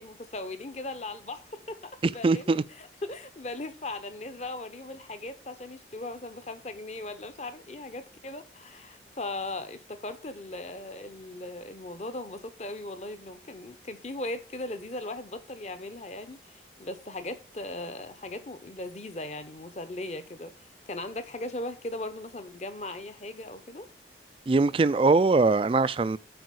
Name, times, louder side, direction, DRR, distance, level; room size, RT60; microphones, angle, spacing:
voice 1, 0.0-1.8 2.0-20.5 20.9-23.9, left 2 dB, 40° left, 0.9 m, -38 dB
voice 2, 2.2-2.6 24.5-26.2, right 3 dB, 30° right, 0.3 m, -22 dB
8.0 x 4.7 x 6.2 m
head